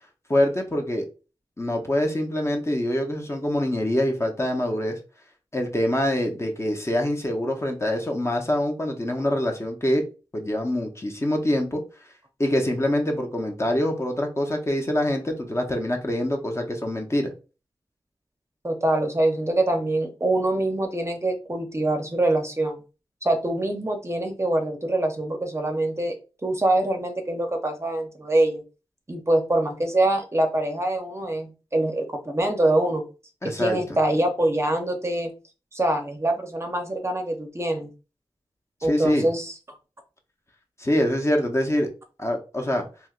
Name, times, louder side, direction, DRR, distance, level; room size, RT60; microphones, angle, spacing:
voice 1, 0.3-1.1 1.6-5.0 5.5-10.0 10.3-11.8 12.4-17.3 33.4-33.8 38.8-39.3 40.8-41.9 42.2-42.8, left 1 dB, 25° left, 2 dB, 0.7 m, -25 dB
voice 2, 18.6-22.8 23.2-26.2 26.4-28.6 29.1-33.0 33.4-35.3 35.7-37.9 38.8-39.8, right 1 dB, 25° right, 4 dB, 0.6 m, -24 dB
3.2 x 2.8 x 2.4 m, 0.33 s
wide cardioid pair, 75°, 10 cm